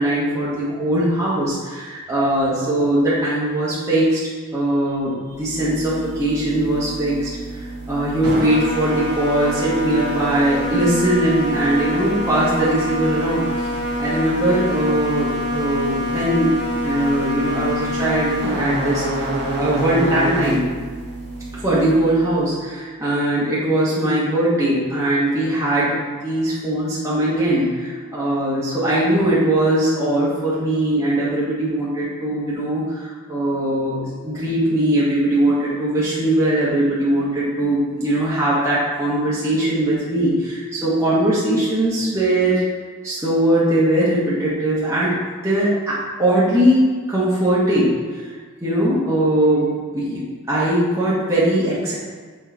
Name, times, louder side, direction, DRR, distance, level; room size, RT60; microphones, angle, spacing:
voice 1, 0.0-4.2 4.5-7.3 7.9-13.5 14.0-16.5 16.8-19.3 19.5-20.6 21.5-42.6 43.0-45.1 45.4-48.2 48.6-49.7 49.9-50.2 50.5-51.9, right 1 dB, 15° right, -10 dB, 1.4 m, -20 dB
sound 1, 5.3-22.5, equal, 50° right, 1.4 m, -26 dB
6.3 x 4.5 x 4.5 m, 1.5 s
head